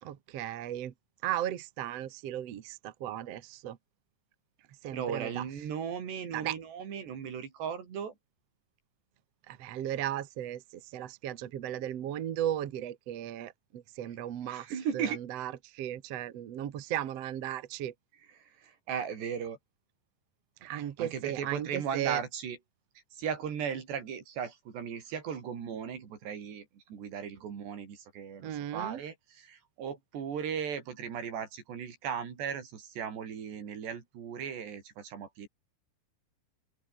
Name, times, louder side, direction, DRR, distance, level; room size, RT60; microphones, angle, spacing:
voice 1, 0.0-0.9 1.2-3.8 4.8-5.4 6.3-6.5 9.5-17.9 20.6-22.2 28.4-29.0, right 11 dB, 60° right, 1.7 m, -36 dB
voice 2, 4.9-8.2 14.5-15.2 18.4-19.6 20.7-22.6 23.2-35.5, right 7 dB, 75° right, 6.1 m, -37 dB
open air
omnidirectional pair, 4.9 m